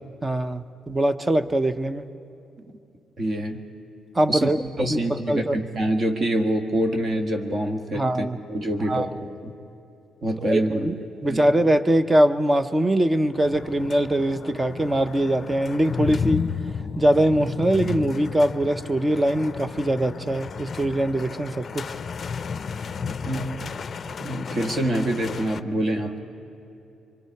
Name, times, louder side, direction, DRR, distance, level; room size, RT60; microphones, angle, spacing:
voice 1, 0.2-2.1 4.1-4.6 4.9-5.0 5.3-5.6 7.9-8.4 8.9-9.1 10.5-10.9 11.2-16.5 17.0-21.9, right 1 dB, 20° right, 12 dB, 0.7 m, -22 dB
voice 2, 3.2-3.6 4.3-4.5 4.8-9.1 9.4-9.5 10.2-10.9 11.2-11.5 23.2-23.5 24.2-26.2, right 1 dB, 45° right, 3 dB, 1.6 m, -26 dB
sound 1, 13.3-25.6, left 6 dB, 45° left, 0.5 m, -33 dB
24.5 x 23.5 x 4.7 m, 2.7 s
cardioid pair, 90°, 0 cm